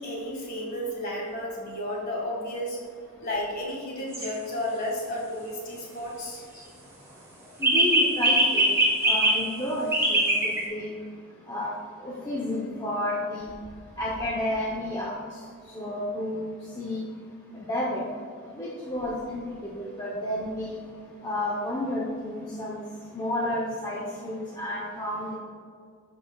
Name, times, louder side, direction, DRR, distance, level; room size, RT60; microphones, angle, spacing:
voice 1, 0.0-2.8 3.2-6.4, left 1 dB, 40° left, -2 dB, 1.8 m, -32 dB
sound 1, 4.1-4.3 7.6-9.4 9.9-10.6, right 1 dB, 10° right, 1.2 m, -22 dB
voice 2, 7.6-8.7 9.1-10.9 11.5-11.7 12.0-13.5 14.0-15.1 15.7-16.5 16.8-17.0 17.5-18.0 18.5-20.8 21.2-22.8 23.1-25.3, left 1 dB, 15° left, -6 dB, 0.8 m, -31 dB
12.5 x 5.4 x 2.4 m, 2.1 s
head